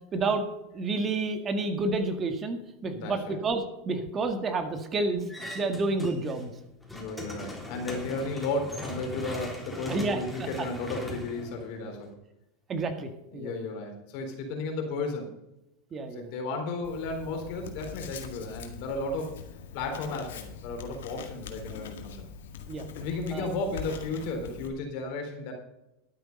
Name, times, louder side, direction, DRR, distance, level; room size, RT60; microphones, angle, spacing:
voice 1, 0.1-0.4 0.7-5.3 5.5-6.5 9.9-10.2 12.7-13.5 15.9-16.3 22.7-22.8 23.3-23.5, right 3 dB, 30° right, 6 dB, 1.9 m, -29 dB
voice 2, 2.9-3.4 6.9-12.1 13.3-15.3 16.1-19.4 19.7-22.3 23.0-25.5, left 3 dB, 60° left, 3 dB, 4.0 m, -34 dB
sound 1, 5.3-6.4 6.7-12.1, left 1 dB, ahead, 3.5 m, -40 dB
Writing, 16.8-24.7, left 6 dB, 85° left, 2.0 m, -43 dB
12.0 x 9.2 x 5.5 m, 0.90 s
hypercardioid pair, 110°, 0 cm